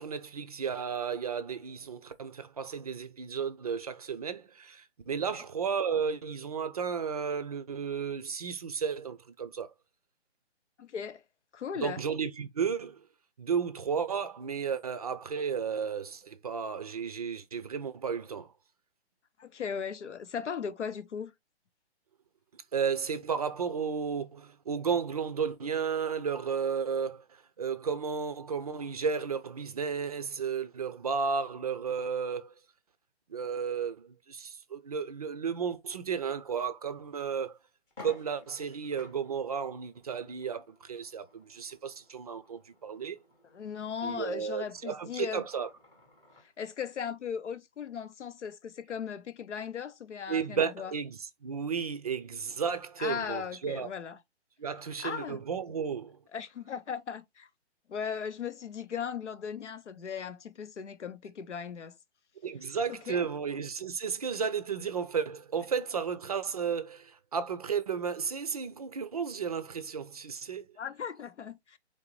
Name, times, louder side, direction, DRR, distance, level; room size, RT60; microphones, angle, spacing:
voice 1, 0.0-9.7 11.8-13.0 13.4-18.5 22.7-27.2 27.6-32.5 33.3-37.6 38.0-43.2 44.0-45.7 50.3-53.9 54.6-56.2 62.4-70.7, right 6 dB, 35° right, 0.4 m, -33 dB
voice 2, 10.8-11.2 11.5-12.0 19.4-21.3 43.4-45.5 46.4-50.9 53.0-54.2 54.8-55.4 56.3-57.5 57.9-62.0 62.9-63.3 70.8-71.8, left 7 dB, 90° left, 0.7 m, -37 dB
sound 1, 36.9-37.0 37.4-37.5 37.9-46.5, left 3 dB, 10° left, 0.6 m, -56 dB
3.9 x 3.1 x 3.0 m
hypercardioid pair, 150°, 34 cm